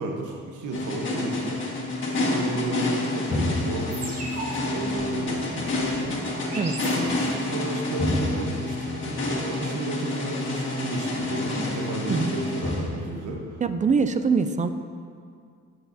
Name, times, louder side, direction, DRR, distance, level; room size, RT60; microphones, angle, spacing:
voice 1, 0.0-1.6 2.1-6.2 6.9-13.6, right 2 dB, 75° right, 0 dB, 1.1 m, -33 dB
sound 1, 0.7-13.5, left 2 dB, 40° left, 1.7 m, -28 dB
sound 2, 3.9-7.6, right 2 dB, 55° right, 1.9 m, -39 dB
voice 2, 13.6-14.7, right 5 dB, 25° right, 10 dB, 0.4 m, -23 dB
11.0 x 6.3 x 2.7 m, 2.3 s
cardioid pair, 90°, 30 cm